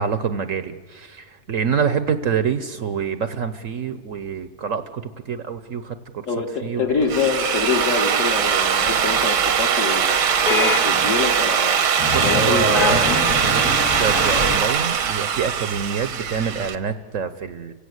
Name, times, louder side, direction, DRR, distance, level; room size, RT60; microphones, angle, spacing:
voice 1, 0.0-6.3 6.6-6.9 12.1-13.1 13.4-17.7, right 6 dB, 55° right, 11 dB, 1.1 m, -26 dB
voice 2, 6.3-10.2 10.5-11.8 12.2-13.0, left 5 dB, 50° left, 3 dB, 2.2 m, -25 dB
Drill, 6.9-16.8, right 8 dB, 85° right, 1.8 m, -21 dB
sound 1, 8.8-9.5 10.5-11.4 12.0-14.6, left 3 dB, 65° left, 2.7 m, -25 dB
29.5 x 16.5 x 8.0 m, 1.5 s
omnidirectional pair, 1.8 m